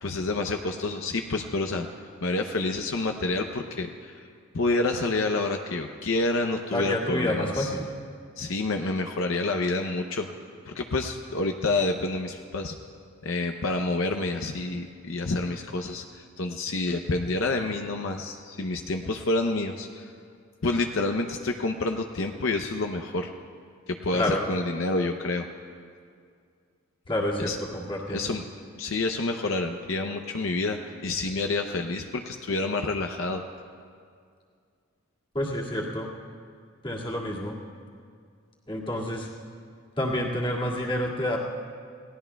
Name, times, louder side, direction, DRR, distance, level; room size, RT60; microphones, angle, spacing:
voice 1, 0.0-1.9 2.2-4.2 4.5-7.7 8.4-10.3 10.7-12.8 13.2-20.1 20.6-23.3 23.9-25.5 27.4-27.6 28.1-28.4 28.8-33.4, left 2 dB, 65° left, 5 dB, 0.7 m, -28 dB
voice 2, 6.7-7.9 24.1-24.4 27.1-28.2 35.3-36.1 36.8-37.5 38.7-39.3 40.0-41.4, left 1 dB, 25° left, -4 dB, 2.1 m, -28 dB
28.5 x 18.5 x 2.3 m, 2.2 s
head